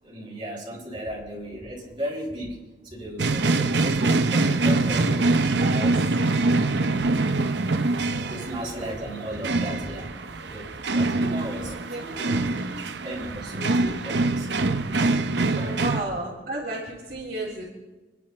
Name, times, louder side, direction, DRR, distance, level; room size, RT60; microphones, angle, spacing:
voice 1, 0.0-2.6 2.9-6.2 6.6-7.3 8.3-14.7 15.1-15.8, right 1 dB, 25° right, -5 dB, 6.0 m, -36 dB
sound 1, 3.2-16.0, right 2 dB, 70° right, 0.8 m, -24 dB
voice 2, 8.1-8.7 11.9-12.7 15.5-17.6, right 2 dB, 50° right, -6 dB, 3.7 m, -34 dB
28.0 x 11.0 x 4.5 m, 1.2 s
head